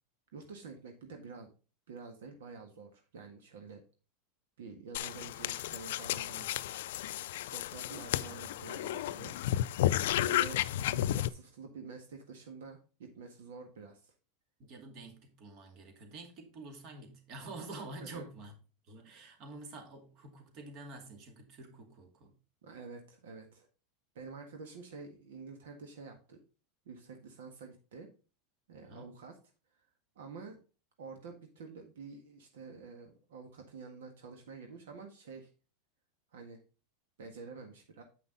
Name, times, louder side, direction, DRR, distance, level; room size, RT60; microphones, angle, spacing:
voice 1, 0.3-1.5 1.9-3.8 4.6-6.5 7.5-9.3 10.2-14.1 18.0-18.2 22.6-23.7 24.1-26.4 26.8-28.1 28.7-29.4 30.1-30.6 31.0-35.5 36.3-36.6 37.2-38.0, right 4 dB, 85° right, 1.6 m, -48 dB
sound 1, 4.9-11.3, left 13 dB, 75° left, 0.4 m, -33 dB
voice 2, 14.6-18.5 18.9-22.3 28.9-29.1, right 2 dB, 50° right, 2.3 m, -48 dB
8.4 x 5.6 x 4.0 m
supercardioid pair, 120°, 0 cm